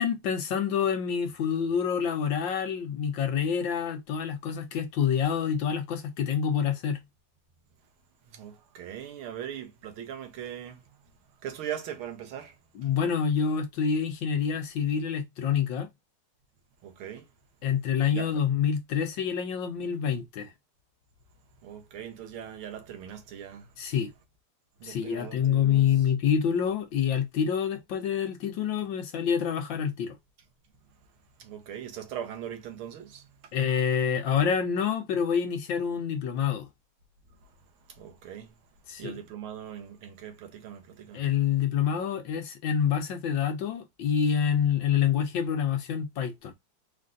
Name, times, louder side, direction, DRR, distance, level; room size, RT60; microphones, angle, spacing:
voice 1, 0.0-7.0 12.7-15.9 17.6-20.5 23.8-24.1 24.8-30.2 33.5-36.7 38.9-39.2 41.1-46.5, left 7 dB, 70° left, 1.3 m, -27 dB
voice 2, 8.3-10.9 11.4-12.6 16.8-17.3 18.1-18.3 21.6-23.7 24.8-25.9 31.4-33.5 37.4-37.5 37.9-38.5 39.0-41.2, right 9 dB, 75° right, 1.8 m, -40 dB
4.4 x 2.5 x 3.7 m
omnidirectional pair, 2.4 m